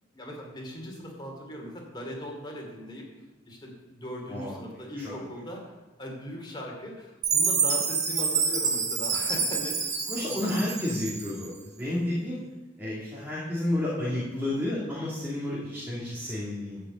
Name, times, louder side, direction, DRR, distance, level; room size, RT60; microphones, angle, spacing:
voice 1, 0.1-3.0 3.5-5.7 6.0-10.4, equal, 25° left, 0 dB, 2.7 m, -39 dB
voice 2, 4.3-4.6 5.0-5.2 10.1-12.4 12.8-16.8, left 1 dB, 10° right, -7 dB, 2.5 m, -31 dB
Chime, 7.2-11.5, right 5 dB, 40° right, 1.4 m, -27 dB
12.5 x 5.3 x 8.2 m, 1.1 s
head